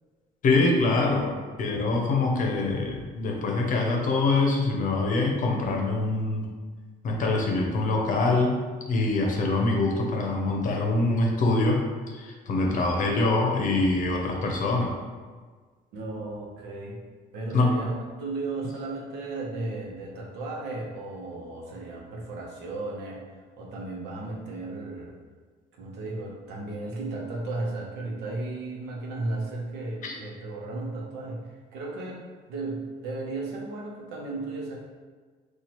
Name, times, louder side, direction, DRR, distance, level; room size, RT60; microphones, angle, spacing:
voice 1, 0.4-1.3 1.6-6.5 7.0-8.6 8.9-11.8 12.1-14.9 17.5-17.7 30.0-30.1, left 2 dB, 50° left, 0 dB, 0.7 m, -24 dB
voice 2, 15.9-17.0 17.3-25.1 25.7-34.8, right 2 dB, 90° right, -2 dB, 0.8 m, -35 dB
4.0 x 2.4 x 3.0 m, 1.5 s
cardioid pair, 110°, 17 cm